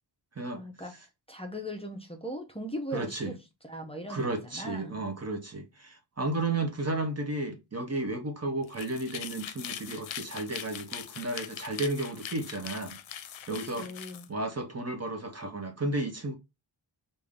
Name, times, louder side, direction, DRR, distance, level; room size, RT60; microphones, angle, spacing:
voice 1, 0.5-0.9 1.3-3.4 3.6-5.1 13.6-14.3, equal, 15° left, 0.7 m, -39 dB
voice 2, 2.9-3.3 4.1-13.0 13.5-13.9 14.3-16.3, right 2 dB, 35° right, 0.7 m, -33 dB
sound 1, 8.6-14.3, left 9 dB, 90° left, 0.6 m, -41 dB
3.6 x 2.6 x 3.5 m
wide cardioid pair, 100°, 45 cm